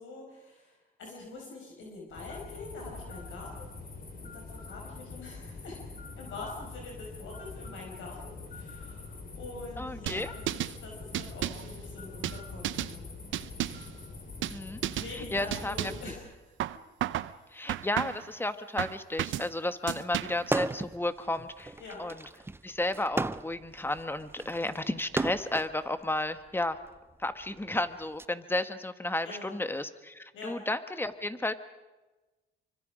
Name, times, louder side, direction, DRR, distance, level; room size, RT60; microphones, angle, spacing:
voice 1, 0.0-3.7 4.2-5.8 6.2-10.4 10.8-13.0 15.0-16.8 21.8-22.0 29.2-29.5 30.3-30.5, left 3 dB, 75° left, -1 dB, 5.8 m, -45 dB
sound 1, 2.1-16.2, left 3 dB, 45° left, 4.0 m, -44 dB
voice 2, 9.8-10.3 14.5-14.8 15.1-15.9 17.5-21.7 22.0-22.2 22.6-26.8 27.2-31.5, left 2 dB, 10° left, 10 dB, 1.5 m, -33 dB
sound 2, 10.1-10.8 11.1-11.7 12.2-12.9 13.3-13.9 14.4-14.6 14.8-15.1 15.5-16.1 16.6-17.3 17.7-18.3 18.8-19.5 19.9-20.5, right 13 dB, 75° right, 0.8 m, -33 dB
sound 3, 20.4-21.0 21.3-25.7 26.6-28.2, right 2 dB, 10° right, 0.7 m, -34 dB
26.0 x 25.0 x 5.1 m, 1.1 s
cardioid pair, 90°, 20 cm